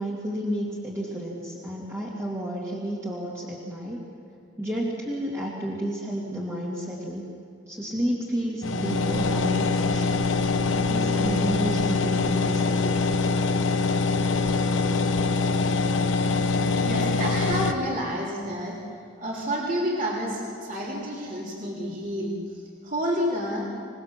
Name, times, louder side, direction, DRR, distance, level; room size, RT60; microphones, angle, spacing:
voice 1, 0.0-4.0 4.6-7.2 7.7-10.2 10.7-12.9 14.7-15.1, equal, 15° right, -6 dB, 2.4 m, -31 dB
sound 1, 8.6-17.7, left 3 dB, 75° left, 1.2 m, -24 dB
voice 2, 16.8-18.8 19.2-23.7, equal, 45° right, -4 dB, 3.6 m, -29 dB
27.5 x 19.0 x 7.5 m, 2.7 s
head